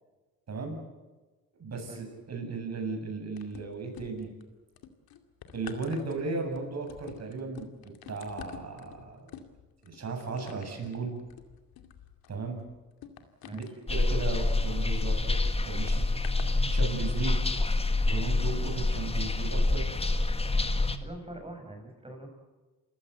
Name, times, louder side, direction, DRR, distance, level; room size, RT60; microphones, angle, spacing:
voice 1, 0.5-0.8 1.6-4.3 5.5-9.4 9.8-11.1 12.3-12.6 13.5-13.6 13.9-16.0 16.7-17.4 18.1-19.9, right 4 dB, 45° right, 3 dB, 7.7 m, -35 dB
sound 1, 3.4-4.4 4.8-15.1 15.9-16.6 17.3-17.4, left 9 dB, 80° left, 2.4 m, -49 dB
voice 2, 13.4-13.8 17.5-17.6 20.6-22.3, right 1 dB, 15° right, 4 dB, 7.7 m, -44 dB
sound 2, 13.9-21.0, left 2 dB, 15° left, 1.8 m, -27 dB
29.0 x 16.0 x 8.1 m, 1.2 s
cardioid pair, 90°, 35 cm